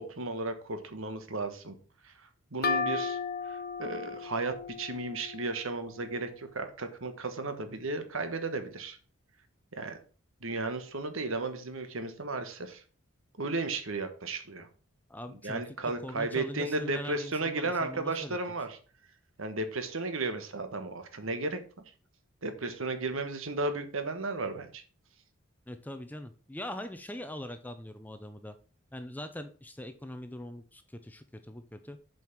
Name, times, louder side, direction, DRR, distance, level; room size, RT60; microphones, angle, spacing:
voice 1, 0.0-1.8 2.0-2.1 2.5-3.2 3.4-9.0 9.7-10.0 10.4-12.8 13.4-14.7 15.4-18.8 19.4-21.6 22.4-24.8, right 3 dB, 70° right, 9 dB, 1.4 m, -34 dB
sound 1, 2.6-6.2, left 4 dB, 45° left, 0.8 m, -35 dB
voice 2, 15.1-15.6 16.0-18.4 25.7-28.5 28.9-32.0, left 1 dB, 10° left, 9 dB, 0.6 m, -42 dB
7.6 x 5.6 x 6.0 m, 0.39 s
head